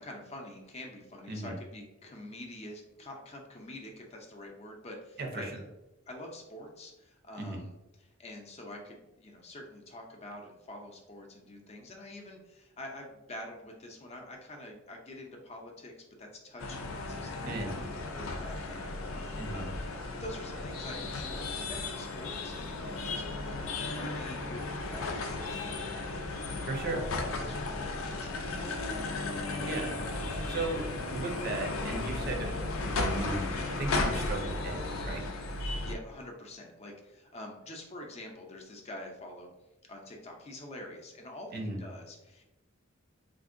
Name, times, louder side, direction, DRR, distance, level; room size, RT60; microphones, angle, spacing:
voice 1, 0.0-5.6 6.1-7.7 8.0-19.8 20.1-23.2 23.6-26.8 27.4-29.7 35.5-39.5 39.9-42.4, left 1 dB, 30° left, 1 dB, 0.5 m, -46 dB
voice 2, 5.2-5.5 7.4-7.6 17.4-17.8 19.4-19.7 26.7-27.1 29.7-30.0 30.5-33.5 33.8-35.2 41.5-41.8, right 2 dB, 50° right, 2 dB, 0.5 m, -36 dB
sound 1, 16.6-35.9, left 2 dB, 85° left, 0.4 m, -35 dB
3.5 x 2.6 x 2.5 m, 0.99 s
head